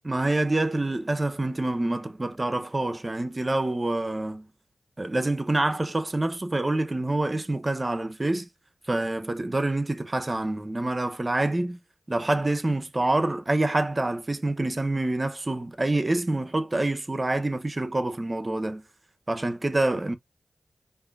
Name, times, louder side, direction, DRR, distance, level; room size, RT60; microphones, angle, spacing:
voice 1, 0.0-4.5 5.0-8.5 8.9-11.8 12.1-18.8 19.3-20.1, right 2 dB, 35° right, 0.8 m, -26 dB
4.9 x 2.7 x 2.5 m
cardioid pair, 55°, 0 cm